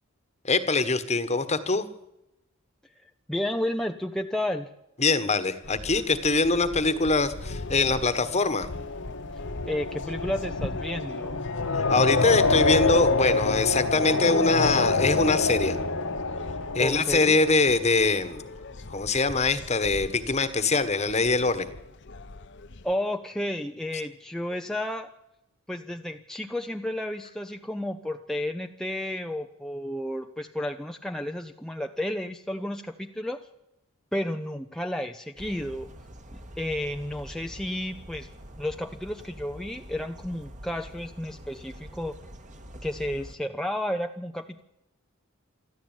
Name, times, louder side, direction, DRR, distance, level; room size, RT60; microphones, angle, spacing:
voice 1, 0.4-1.9 5.0-8.7 11.7-15.8 16.7-18.5 18.9-21.7, left 3 dB, 30° left, 13 dB, 1.4 m, -23 dB
voice 2, 3.0-4.7 9.7-11.4 16.8-17.4 22.8-25.1 25.7-33.4 34.1-35.9 36.3-38.3 38.6-42.1 42.8-44.6, left 1 dB, ahead, 4 dB, 0.7 m, -32 dB
sound 1, 5.6-22.9, left 2 dB, 55° left, 1.0 m, -41 dB
sound 2, 7.4-18.3, left 3 dB, 75° left, 1.7 m, -27 dB
sound 3, 35.4-43.4, equal, 35° right, 1.9 m, -45 dB
24.5 x 14.0 x 9.0 m, 0.88 s
head